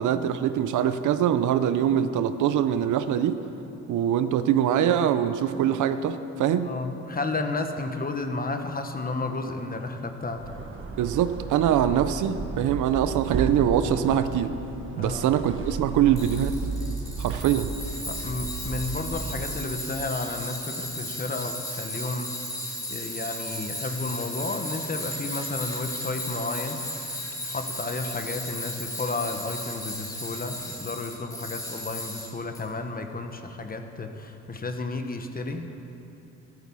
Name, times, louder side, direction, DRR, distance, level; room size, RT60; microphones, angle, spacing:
voice 1, 0.0-3.4 3.9-6.7 11.0-14.6 15.0-16.6 17.2-17.7, right 10 dB, 80° right, 11 dB, 0.7 m, -23 dB
voice 2, 6.6-10.5 15.0-15.3 18.0-22.4 22.9-26.8 27.2-35.7, left 3 dB, 30° left, 6 dB, 1.4 m, -32 dB
sound 1, 10.3-19.8, right 4 dB, 40° right, 1.3 m, -34 dB
Tools, 16.2-32.6, left 1 dB, 10° left, 2.9 m, -35 dB
13.5 x 13.5 x 5.6 m, 2.9 s
cardioid pair, 90°, 30 cm